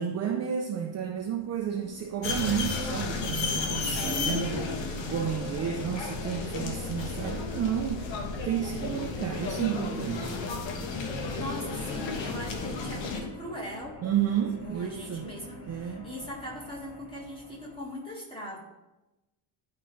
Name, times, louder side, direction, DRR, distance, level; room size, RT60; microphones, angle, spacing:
voice 1, 0.0-4.7 5.1-10.4 14.0-15.3 15.7-16.1, right 8 dB, 35° right, 3 dB, 0.4 m, -31 dB
sound 1, 0.8-17.8, equal, 85° left, 2.5 m, -47 dB
sound 2, 2.2-13.2, left 4 dB, 65° left, 1.2 m, -33 dB
voice 2, 3.8-4.8 11.3-18.6, left 1 dB, 10° left, -4 dB, 1.7 m, -39 dB
11.5 x 4.6 x 3.1 m, 1.0 s
cardioid pair, 170°, 47 cm